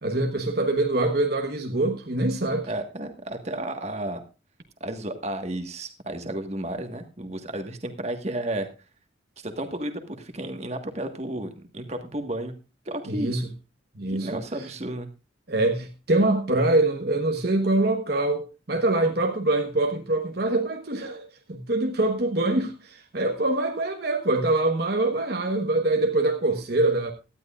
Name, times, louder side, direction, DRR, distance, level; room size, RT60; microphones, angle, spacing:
voice 1, 0.0-2.7 13.1-13.4 13.9-14.4 15.5-27.1, right 2 dB, 55° right, 1.2 m, -24 dB
voice 2, 2.7-4.2 4.8-8.7 9.4-12.5 12.8-13.3 14.1-15.1, right 1 dB, 35° right, 1.5 m, -32 dB
17.5 x 12.5 x 2.5 m
head